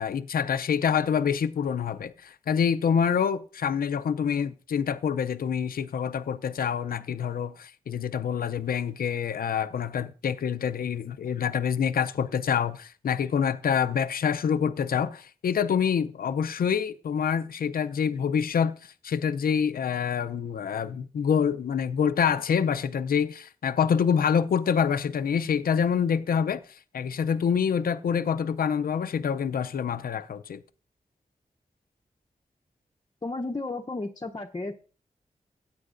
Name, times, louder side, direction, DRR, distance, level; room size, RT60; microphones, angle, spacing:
voice 1, 0.0-30.6, left 7 dB, 85° left, 0.5 m, -26 dB
voice 2, 33.2-34.7, left 2 dB, 30° left, 0.7 m, -33 dB
16.0 x 9.0 x 2.5 m
wide cardioid pair, 80°, 15 cm